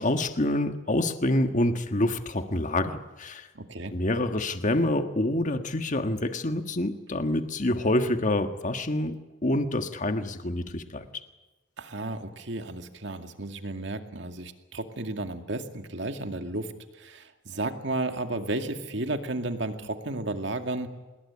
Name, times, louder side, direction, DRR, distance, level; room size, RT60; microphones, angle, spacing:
voice 1, 0.0-3.5 3.9-9.2 9.4-11.2, left 1 dB, 40° left, 7 dB, 1.6 m, -27 dB
voice 2, 3.5-3.9 11.8-21.0, right 2 dB, 65° right, 6 dB, 2.3 m, -33 dB
26.0 x 20.5 x 9.8 m, 1.1 s
head